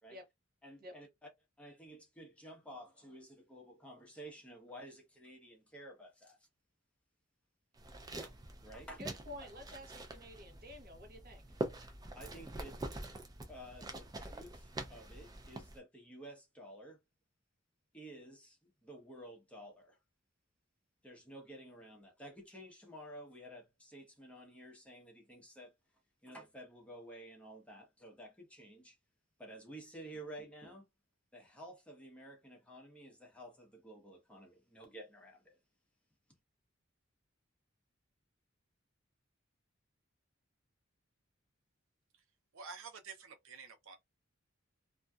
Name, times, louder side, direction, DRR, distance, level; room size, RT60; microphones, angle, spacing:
voice 1, 0.6-1.1 1.6-6.4 8.2-8.3 8.6-9.0 9.4-9.5 12.1-12.8 13.5-17.0 17.9-20.0 21.0-25.7 26.2-29.0 29.4-30.9 31.3-35.6, right 1 dB, 5° left, 0.8 m, -52 dB
sound 1, 7.8-15.8, right 2 dB, 20° right, 0.4 m, -45 dB
voice 2, 9.0-11.4, left 1 dB, 50° right, 0.9 m, -50 dB
voice 3, 42.5-44.0, right 5 dB, 80° right, 0.6 m, -49 dB
2.6 x 2.2 x 2.3 m
head